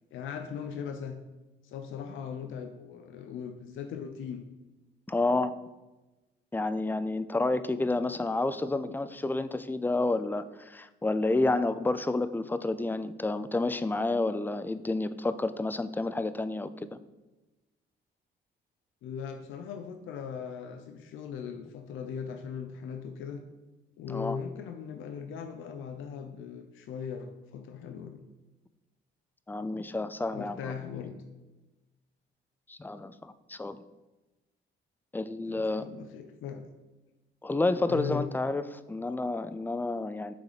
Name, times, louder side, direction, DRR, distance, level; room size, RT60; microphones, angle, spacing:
voice 1, 0.1-1.2 1.6-4.4 19.0-23.4 24.0-28.2 30.3-31.2 35.5-36.7 37.9-38.3, left 7 dB, 80° left, 6 dB, 0.6 m, -39 dB
voice 2, 5.1-5.5 6.5-16.9 24.1-24.4 29.5-30.7 32.7-33.8 35.1-35.8 37.4-40.3, left 2 dB, 10° left, 13 dB, 0.3 m, -30 dB
6.7 x 4.0 x 4.9 m, 1.1 s
cardioid pair, 90°, 20 cm